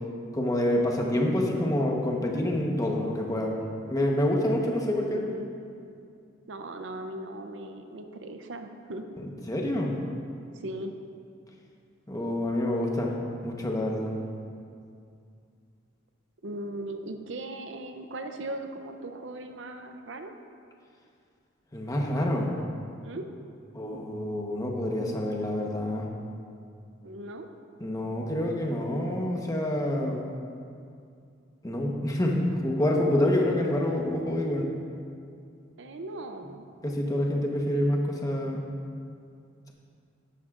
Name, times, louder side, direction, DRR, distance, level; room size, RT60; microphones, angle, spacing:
voice 1, 0.3-3.6 3.9-5.2 9.2-10.0 12.1-13.1 13.4-14.1 21.7-22.5 23.7-26.1 27.8-30.2 31.6-34.7 36.8-38.6, left 1 dB, 20° left, 0 dB, 1.1 m, -27 dB
voice 2, 4.9-5.5 6.5-9.1 10.5-10.9 16.4-20.3 23.0-23.3 27.0-27.5 33.1-33.4 35.8-36.7, right 1 dB, 70° right, 6 dB, 0.6 m, -38 dB
13.0 x 11.0 x 2.5 m, 2.4 s
head